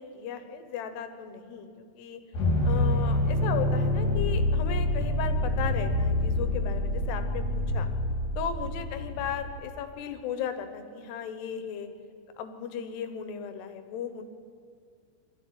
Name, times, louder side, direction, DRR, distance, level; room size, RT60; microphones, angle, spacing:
voice 1, 0.0-2.2 2.6-7.9 8.4-11.9 12.4-14.2, left 8 dB, 90° left, 8 dB, 3.4 m, -36 dB
sound 1, 2.3-9.5, left 1 dB, 55° left, 4.8 m, -27 dB
22.5 x 14.0 x 9.5 m, 2.2 s
omnidirectional pair, 4.6 m